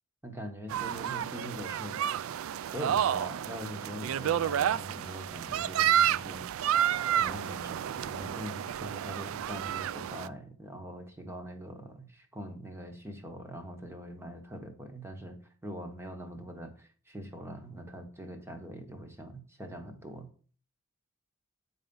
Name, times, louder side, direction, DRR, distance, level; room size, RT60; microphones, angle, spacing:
voice 1, 0.2-2.0 2.6-6.4 7.2-15.4 15.6-20.3, equal, 10° right, 4 dB, 1.2 m, -42 dB
sound 1, 0.7-10.3, right 10 dB, 70° right, 0.3 m, -30 dB
8.2 x 4.1 x 5.4 m, 0.42 s
head